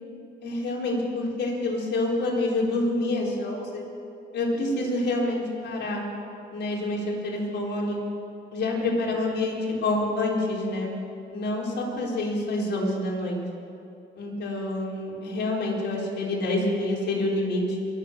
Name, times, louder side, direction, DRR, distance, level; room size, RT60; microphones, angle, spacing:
voice 1, 0.4-3.8 4.3-6.0 6.5-8.0 8.5-10.9 11.3-13.4 14.2-17.8, left 2 dB, 60° left, -3 dB, 4.3 m, -27 dB
22.5 x 7.9 x 7.5 m, 2.8 s
cardioid pair, 90°, 20 cm